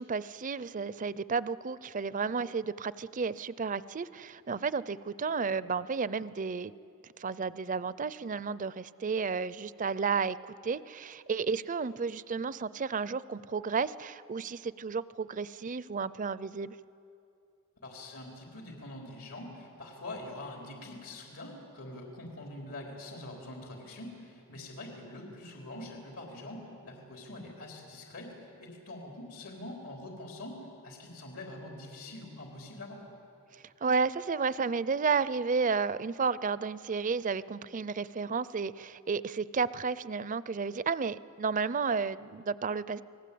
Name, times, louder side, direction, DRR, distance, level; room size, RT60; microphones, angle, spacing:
voice 1, 0.0-6.7 7.2-16.8 33.5-43.0, right 5 dB, 35° right, 17 dB, 0.5 m, -32 dB
voice 2, 17.8-33.0, left 1 dB, 85° left, 0 dB, 3.9 m, -44 dB
29.0 x 19.0 x 8.5 m, 2.7 s
head